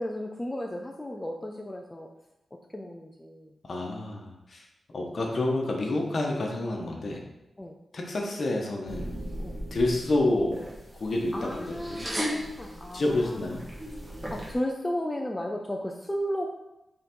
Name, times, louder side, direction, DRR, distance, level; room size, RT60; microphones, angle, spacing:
voice 1, 0.0-2.1 2.7-3.5 7.6-7.7 9.4-9.5 11.3-13.5 14.3-16.5, equal, 15° left, 1 dB, 0.4 m, -34 dB
voice 2, 3.7-4.6 4.9-7.2 7.9-9.1 9.7-10.6 11.0-12.1 12.9-13.6, left 2 dB, 45° left, 1 dB, 1.0 m, -28 dB
sound 1, 8.9-14.5, equal, 15° right, 1.5 m, -37 dB
5.7 x 3.8 x 4.5 m, 0.91 s
wide cardioid pair, 155°, 0 cm